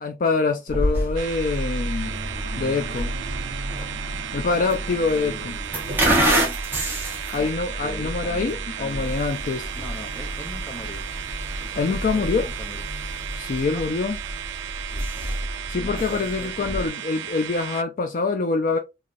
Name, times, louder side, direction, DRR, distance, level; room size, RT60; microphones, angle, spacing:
voice 1, 0.0-2.1 2.6-3.1 4.3-5.6 7.3-9.7 11.8-12.5 13.4-14.2 15.7-18.8, left 4 dB, 45° left, 0.3 m, -25 dB
sound 1, 0.7-16.9, right 1 dB, 10° right, 0.9 m, -29 dB
sound 2, 1.2-17.8, right 10 dB, 75° right, 0.3 m, -35 dB
sound 3, 2.0-6.6 7.0-12.2 12.5-12.8 13.1-13.2 13.6-13.7, right 1 dB, 45° right, 0.8 m, -42 dB
voice 2, 5.1-5.9 7.4-7.5 7.8-9.1 9.7-11.0 11.6-12.8 13.7-13.8 15.8-16.9, left 1 dB, 15° left, 0.7 m, -40 dB
3.1 x 2.7 x 2.4 m
head